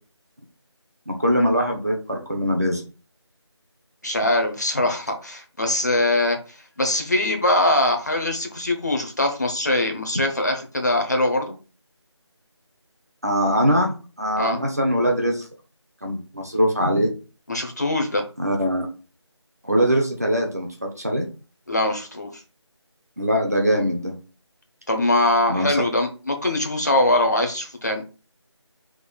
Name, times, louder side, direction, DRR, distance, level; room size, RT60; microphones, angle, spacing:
voice 1, 1.1-2.8 13.2-15.5 16.0-17.1 18.4-18.9 19.6-21.3 23.2-24.1 25.5-25.8, equal, 35° right, 1 dB, 0.7 m, -22 dB
voice 2, 4.0-6.4 6.8-11.6 14.4-14.6 17.5-18.2 21.7-22.4 24.9-28.0, left 1 dB, 35° left, 4 dB, 0.9 m, -22 dB
5.1 x 3.6 x 2.3 m, 0.34 s
figure-of-eight pair, 180°, 15 cm